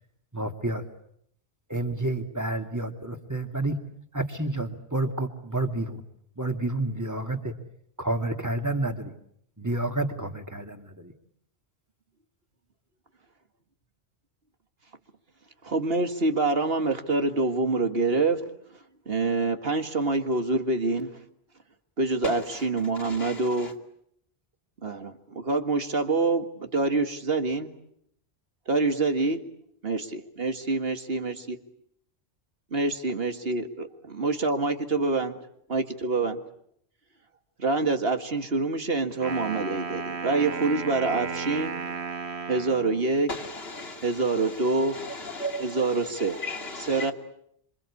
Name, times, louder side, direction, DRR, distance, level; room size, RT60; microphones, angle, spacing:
voice 1, 0.3-0.8 1.7-3.8 4.1-6.0 6.4-7.5 8.0-9.1 9.6-11.1, right 2 dB, 15° right, 2.3 m, -29 dB
voice 2, 15.6-18.5 19.1-21.2 22.0-23.7 24.8-27.8 28.7-29.4 29.8-31.6 32.7-33.7 34.2-35.4 35.7-36.4 37.6-41.8 42.5-43.3 44.0-44.9 45.8-46.4 46.9-47.1, right 3 dB, 65° right, 2.1 m, -26 dB
voice 3, 22.2-22.7 22.9-23.7 43.3-47.1, equal, 70° left, 2.7 m, -36 dB
Wind instrument woodwind instrument, 39.1-43.1, right 5 dB, 85° right, 1.7 m, -34 dB
27.0 x 26.0 x 8.5 m
omnidirectional pair, 1.1 m